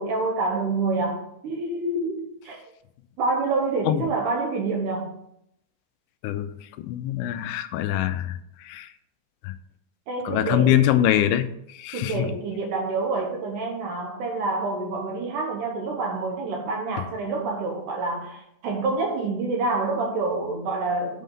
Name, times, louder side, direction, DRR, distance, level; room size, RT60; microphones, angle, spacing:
voice 1, 0.0-2.7 3.2-5.2 10.1-10.8 11.9-21.2, right 3 dB, 80° right, 1 dB, 1.8 m, -27 dB
voice 2, 6.2-8.9 9.4-9.6 10.2-12.3, left 11 dB, 85° left, 9 dB, 2.9 m, -24 dB
8.3 x 5.6 x 5.5 m, 0.75 s
omnidirectional pair, 5.2 m